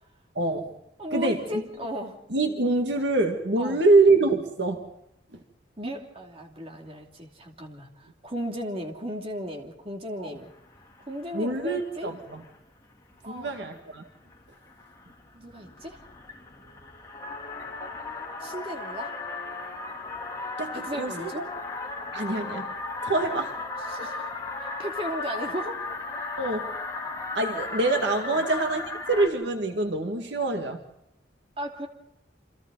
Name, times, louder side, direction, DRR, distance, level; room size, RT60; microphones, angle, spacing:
voice 1, 0.4-0.7 1.1-1.6 2.3-4.9 5.3-5.4 10.2-10.3 11.3-12.4 13.3-14.0 20.6-21.4 22.1-22.7 23.0-23.6 26.4-26.7 27.3-30.8, right 2 dB, 65° right, 4 dB, 2.1 m, -25 dB
voice 2, 1.0-2.2 3.6-3.8 5.8-10.5 11.1-12.1 13.2-13.6 15.3-16.0 18.4-19.1 20.7-21.4 23.8-24.3 24.6-25.8 28.2-28.4 31.6-31.9, equal, 30° right, 2 dB, 2.8 m, -35 dB
sound 1, 10.5-11.5 11.7-12.5 13.1-13.2 13.5-13.8 14.2-29.3, left 3 dB, 20° left, 3.3 m, -36 dB
28.5 x 26.5 x 4.1 m, 0.81 s
head